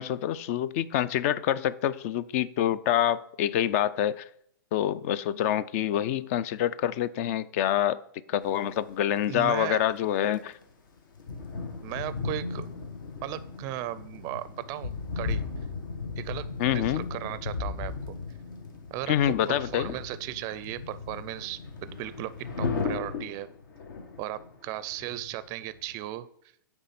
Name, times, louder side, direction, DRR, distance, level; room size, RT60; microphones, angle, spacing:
voice 1, 0.0-4.2 4.7-8.0 8.3-10.6 16.6-17.1 19.1-20.0, left 11 dB, 40° left, 0.4 m, -26 dB
sound 1, 8.6-8.7 10.2-10.6 11.0-26.0, left 4 dB, 65° left, 1.4 m, -36 dB
voice 2, 9.3-9.8 11.8-12.7 13.2-15.4 16.2-18.2 18.9-23.5 24.2-26.3, right 14 dB, 30° right, 0.4 m, -36 dB
9.1 x 3.5 x 5.7 m
hypercardioid pair, 135°, 12 cm